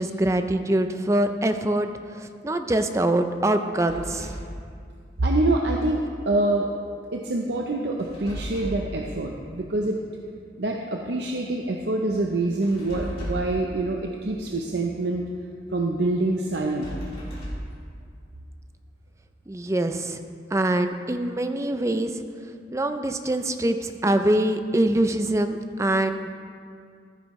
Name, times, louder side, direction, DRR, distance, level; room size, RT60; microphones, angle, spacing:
voice 1, 0.0-1.9 2.2-4.3 19.5-20.2 20.5-22.1 22.7-26.3, right 1 dB, 15° right, 8 dB, 0.4 m, -24 dB
sound 1, 3.8-4.5 8.0-9.0 12.6-13.6 16.5-17.8, equal, 35° left, 2.5 m, -35 dB
voice 2, 5.2-6.7 7.1-10.0 10.6-15.3 15.7-17.0, right 2 dB, 75° right, 1 dB, 0.7 m, -25 dB
14.0 x 9.7 x 3.1 m, 2.2 s
head